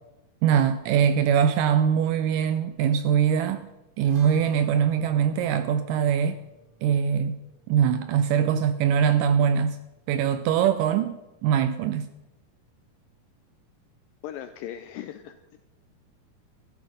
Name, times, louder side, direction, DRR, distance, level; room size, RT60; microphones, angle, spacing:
voice 1, 0.4-3.6 4.0-6.4 6.8-7.4 7.7-9.8 10.1-12.1, right 8 dB, 85° right, 1.9 m, -22 dB
sound 1, 4.0-10.6, right 3 dB, 55° right, 3.5 m, -53 dB
voice 2, 14.2-15.6, left 11 dB, 80° left, 2.1 m, -38 dB
14.5 x 11.5 x 5.2 m
omnidirectional pair, 4.4 m